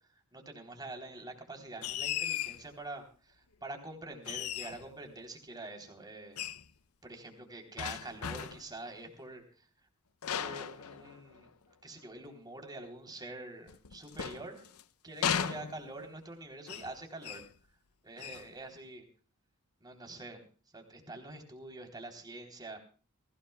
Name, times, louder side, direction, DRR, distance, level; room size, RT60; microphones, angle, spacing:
voice 1, 0.3-6.4 7.0-9.7 10.3-11.5 11.8-14.7 15.0-17.4 18.0-19.0 19.8-20.4 20.7-22.8, right 2 dB, 20° right, 3 dB, 3.6 m, -46 dB
sound 1, 1.8-2.6 4.2-4.9 6.4-6.7 7.8-8.7 10.2-11.5 13.7-14.8 15.2-16.1 16.7-17.0 17.2-17.5 18.2-18.5, left 9 dB, 70° left, 0.7 m, -36 dB
22.5 x 16.5 x 2.3 m, 0.40 s
head